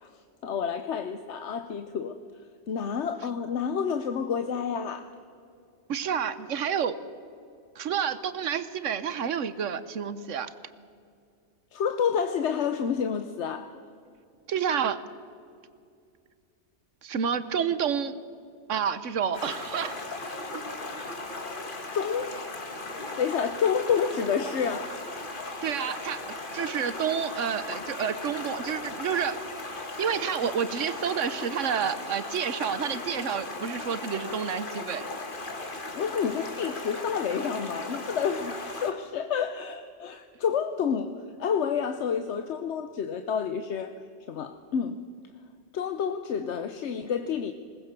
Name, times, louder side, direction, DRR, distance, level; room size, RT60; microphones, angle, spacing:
voice 1, 0.0-2.2 2.7-5.1 11.7-13.8 21.9-22.3 23.2-25.1 35.9-41.1 41.4-43.9 44.3-45.0 45.7-47.5, left 7 dB, 65° left, 9 dB, 1.1 m, -29 dB
voice 2, 5.9-7.0 7.8-10.5 14.5-15.0 17.0-18.1 18.7-20.0 25.6-26.2 26.5-29.4 30.0-35.0, right 7 dB, 75° right, 14 dB, 1.3 m, -29 dB
Stream, 19.3-38.9, left 2 dB, 40° left, 1.9 m, -37 dB
21.0 x 19.0 x 6.8 m, 2.3 s
omnidirectional pair, 1.3 m